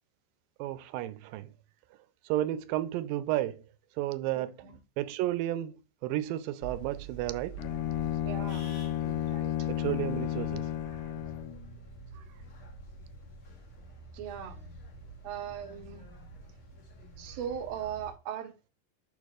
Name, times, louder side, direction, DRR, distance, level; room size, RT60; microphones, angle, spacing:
voice 1, 0.6-1.5 2.2-3.6 4.0-4.6 5.0-5.8 6.0-7.6 9.7-10.7 12.1-12.2, right 14 dB, 85° right, 2.3 m, -32 dB
voice 2, 4.4-4.8 8.2-9.7 14.2-14.6 15.2-16.1 17.2-18.5, right 9 dB, 65° right, 1.9 m, -39 dB
sound 1, 6.6-18.1, right 3 dB, 50° left, 1.7 m, -47 dB
Bowed string instrument, 7.6-11.6, left 12 dB, 85° left, 1.7 m, -32 dB
6.6 x 6.5 x 2.4 m
omnidirectional pair, 4.0 m